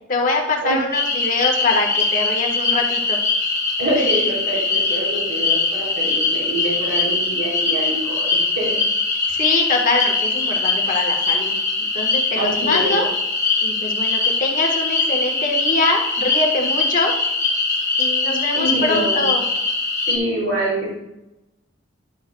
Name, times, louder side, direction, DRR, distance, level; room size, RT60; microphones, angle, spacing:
voice 1, 0.1-3.2 9.3-13.1 13.6-17.1 18.0-19.4, left 3 dB, 40° left, 1 dB, 1.5 m, -23 dB
sound 1, 0.9-20.2, left 3 dB, 15° left, 1.1 m, -21 dB
voice 2, 3.8-8.8 12.4-13.0 18.6-19.3 20.1-20.9, right 1 dB, 65° right, -5 dB, 3.4 m, -25 dB
11.0 x 7.7 x 2.3 m, 0.91 s
head